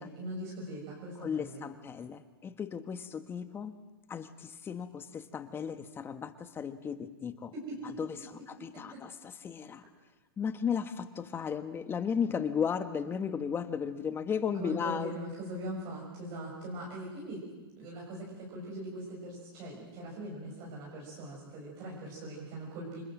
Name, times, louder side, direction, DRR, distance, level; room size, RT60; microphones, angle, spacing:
voice 1, 0.2-1.7 7.5-7.8 14.6-17.4 17.8-23.0, right 1 dB, 40° right, -3 dB, 6.2 m, -41 dB
voice 2, 1.2-3.7 4.1-7.5 7.8-9.8 10.4-15.2, left 7 dB, 20° left, 10 dB, 1.3 m, -35 dB
27.0 x 20.5 x 7.7 m, 1.2 s
hypercardioid pair, 130°, 13 cm